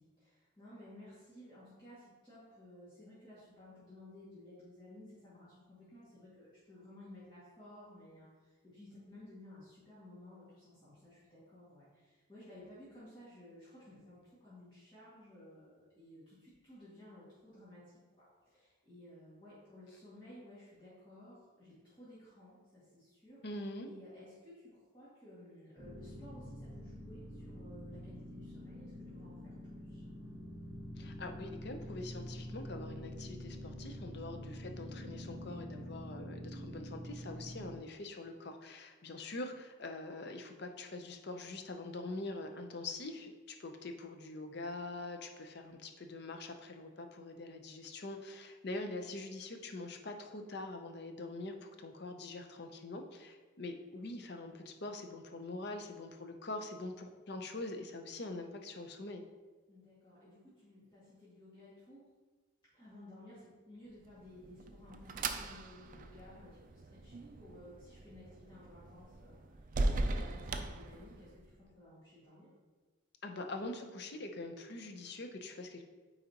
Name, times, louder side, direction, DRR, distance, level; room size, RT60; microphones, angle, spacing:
voice 1, 0.0-30.0 59.7-62.1 62.7-72.5, left 1 dB, 25° left, -12 dB, 2.0 m, -56 dB
voice 2, 23.4-23.9 31.0-59.2 73.2-75.8, left 2 dB, 50° left, 5 dB, 0.6 m, -44 dB
sound 1, 25.8-37.8, equal, 15° right, 0.9 m, -46 dB
sound 2, 64.1-71.5, right 2 dB, 40° right, 0.4 m, -39 dB
8.8 x 4.1 x 2.9 m, 1.3 s
head